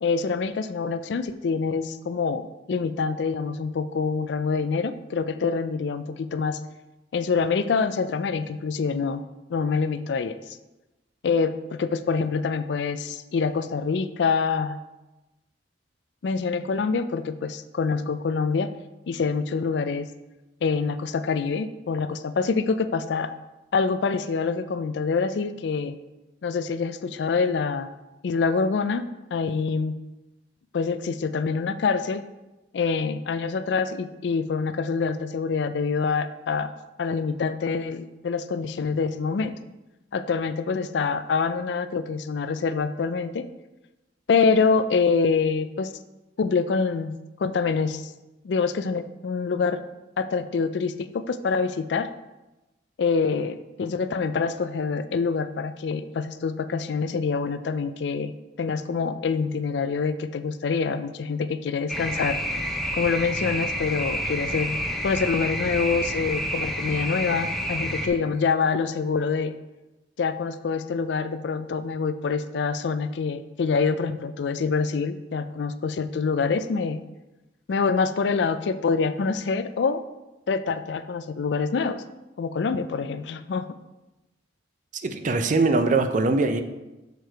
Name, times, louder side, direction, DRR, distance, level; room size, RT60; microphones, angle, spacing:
voice 1, 0.0-6.6 7.1-9.2 9.5-10.6 11.2-14.8 16.2-18.7 19.1-20.1 20.6-23.3 23.7-26.0 26.4-27.9 28.2-30.0 30.7-32.2 32.7-36.7 37.0-39.6 40.1-43.5 44.3-45.9 46.4-47.1 47.4-48.1 48.4-49.8 50.2-52.1 53.0-58.3 58.6-62.4 62.9-64.8 65.0-69.5 70.2-77.0 77.7-80.0 80.5-82.0 82.4-83.7, left 5 dB, 70° left, 12 dB, 0.4 m, -26 dB
sound 1, 61.9-68.1, equal, ahead, 0.7 m, -29 dB
voice 2, 85.0-86.6, right 3 dB, 45° right, 8 dB, 0.5 m, -22 dB
6.7 x 4.6 x 4.5 m, 1.0 s
head